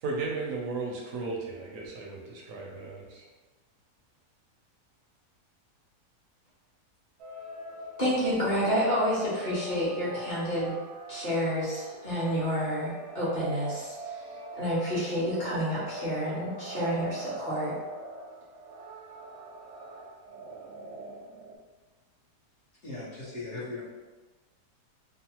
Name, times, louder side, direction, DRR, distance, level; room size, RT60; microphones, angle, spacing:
voice 1, 0.0-3.2, right 3 dB, 70° right, -1 dB, 0.8 m, -35 dB
sound 1, 7.2-21.6, right 1 dB, 85° right, 1.2 m, -42 dB
voice 2, 8.0-10.7 11.1-14.2 14.6-17.7, equal, 30° left, -10 dB, 1.1 m, -29 dB
voice 3, 22.8-23.8, left 2 dB, 55° left, -8 dB, 1.0 m, -38 dB
3.1 x 2.0 x 2.8 m, 1.2 s
omnidirectional pair, 1.7 m